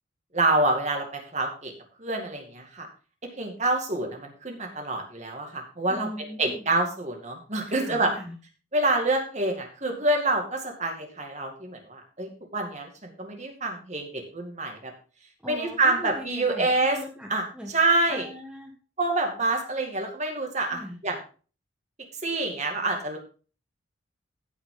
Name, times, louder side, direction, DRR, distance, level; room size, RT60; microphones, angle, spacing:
voice 1, 0.3-1.7 2.0-2.9 3.4-6.1 6.4-8.1 8.7-14.9 15.4-17.0 17.3-17.4 17.7-18.3 19.0-21.2 22.2-23.2, right 2 dB, 35° right, 2 dB, 2.3 m, -27 dB
voice 2, 5.9-6.6 7.7-8.4 15.4-17.7 18.1-18.7 20.7-21.0, equal, 5° right, 0 dB, 1.4 m, -40 dB
15.5 x 6.1 x 3.9 m, 0.37 s
head